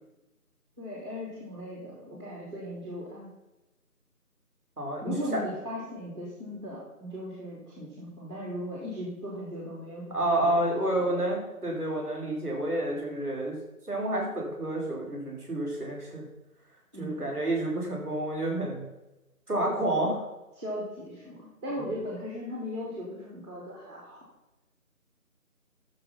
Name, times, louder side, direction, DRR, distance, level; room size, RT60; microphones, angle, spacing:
voice 1, 0.8-3.3 5.0-11.2 16.9-17.3 20.5-24.2, left 1 dB, 20° right, -6 dB, 3.0 m, -38 dB
voice 2, 4.8-5.4 10.1-13.6 13.9-16.2 17.0-18.9 19.5-20.2, right 1 dB, 5° right, -18 dB, 3.4 m, -29 dB
12.5 x 7.4 x 5.7 m, 1.0 s
figure-of-eight pair, 165°, 45 cm